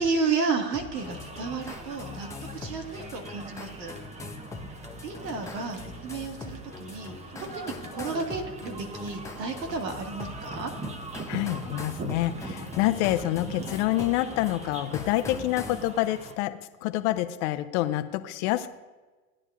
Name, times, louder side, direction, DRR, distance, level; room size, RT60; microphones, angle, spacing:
voice 1, 0.0-2.3 2.5-3.9 5.0-10.7, right 4 dB, 85° right, 4 dB, 2.1 m, -32 dB
sound 1, 0.7-15.9, left 4 dB, 5° left, 0.5 m, -42 dB
sound 2, 0.9-16.3, right 3 dB, 15° right, 0.9 m, -41 dB
voice 2, 11.3-18.7, left 15 dB, 45° left, 11 dB, 0.8 m, -27 dB
16.5 x 9.8 x 2.5 m, 1.3 s
hypercardioid pair, 110°, 48 cm